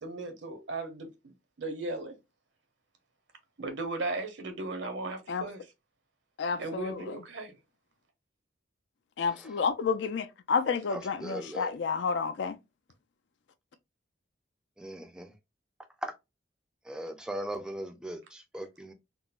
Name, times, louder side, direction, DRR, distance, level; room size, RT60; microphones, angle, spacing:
voice 1, 0.0-2.2 3.6-5.6 6.6-7.5, right 2 dB, 70° right, 0.8 m, -37 dB
voice 2, 6.4-7.0 9.2-12.6, left 5 dB, 65° left, 0.4 m, -30 dB
voice 3, 10.9-11.7 14.8-15.3 16.0-16.1 16.9-18.9, right 1 dB, 5° right, 0.3 m, -38 dB
3.7 x 2.0 x 2.3 m
head